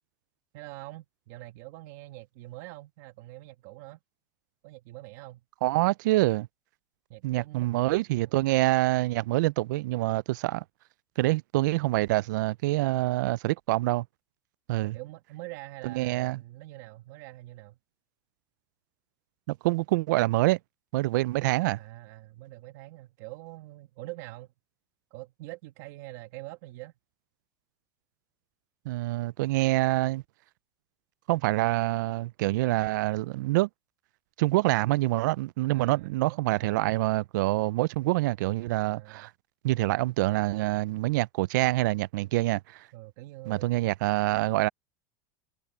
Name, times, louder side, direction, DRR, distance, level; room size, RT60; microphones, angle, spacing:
voice 1, 0.5-4.0 4.6-5.4 7.1-8.0 14.7-17.8 21.8-24.5 25.1-26.9 35.7-36.7 38.9-39.3 42.9-43.8, right 19 dB, 60° right, 1.4 m, -44 dB
voice 2, 5.6-6.5 7.2-10.6 11.2-14.1 14.7-15.0 15.8-16.4 19.5-20.6 20.9-21.8 28.9-30.2 31.3-33.7 34.4-39.3 39.6-42.9 43.5-44.7, right 19 dB, 80° right, 0.4 m, -26 dB
supercardioid pair, 160°, 10 cm